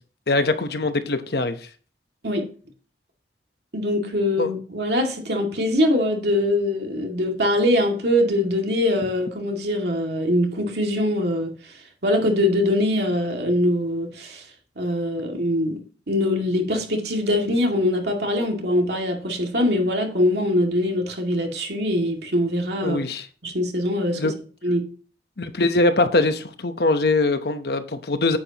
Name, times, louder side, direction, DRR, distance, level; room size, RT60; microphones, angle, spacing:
voice 1, 0.3-1.6 4.4-4.5 22.8-23.3 24.1-24.3 25.4-28.4, left 2 dB, 60° left, 0.9 m, -22 dB
voice 2, 3.7-11.5 12.0-14.4 14.8-15.8 16.1-23.0 23.4-24.2 24.6-24.9, left 1 dB, 70° right, 2.2 m, -22 dB
9.6 x 8.2 x 2.9 m
head